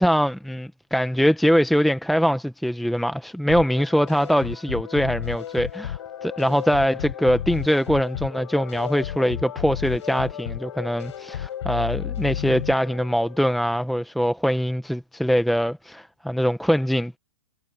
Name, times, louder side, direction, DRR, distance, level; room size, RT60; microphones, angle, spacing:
voice 1, 0.0-17.2, equal, ahead, 1.0 m, -22 dB
sound 1, 3.5-13.6, left 10 dB, 70° left, 4.8 m, -33 dB
hypercardioid pair, 125°, 16 cm